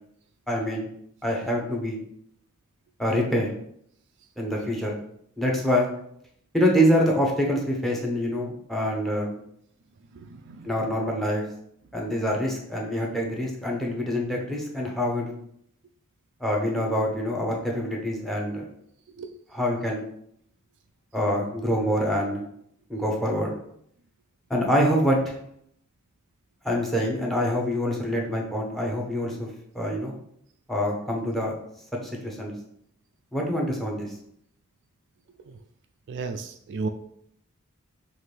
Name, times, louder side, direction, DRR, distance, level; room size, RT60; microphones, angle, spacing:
voice 1, 0.5-0.9 1.2-2.0 3.0-3.5 4.4-5.0 5.4-5.9 6.5-9.4 10.6-11.4 11.9-15.3 16.4-18.7 19.5-20.0 21.1-22.4 22.9-23.5 24.5-25.3 26.6-29.5 29.7-30.2 30.7-31.5 32.0-32.5 33.3-34.1, equal, ahead, 0 dB, 0.8 m, -25 dB
voice 2, 10.1-10.7 19.2-19.3 36.1-36.9, right 4 dB, 55° right, 7 dB, 0.3 m, -33 dB
5.7 x 2.5 x 3.3 m, 0.70 s
head